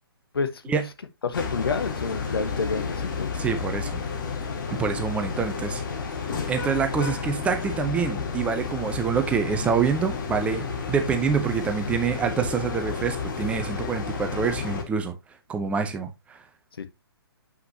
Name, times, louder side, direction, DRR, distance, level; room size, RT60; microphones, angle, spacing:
voice 1, 0.3-0.7 1.2-3.3 15.8-15.9 16.8-16.9, left 4 dB, 65° left, 1.2 m, -29 dB
sound 1, 1.3-14.8, left 5 dB, 50° left, 1.8 m, -31 dB
voice 2, 3.4-4.0 4.7-5.8 6.5-15.1 15.5-16.4, right 6 dB, 10° right, 0.6 m, -26 dB
7.9 x 5.7 x 2.8 m
figure-of-eight pair, 135°, 13 cm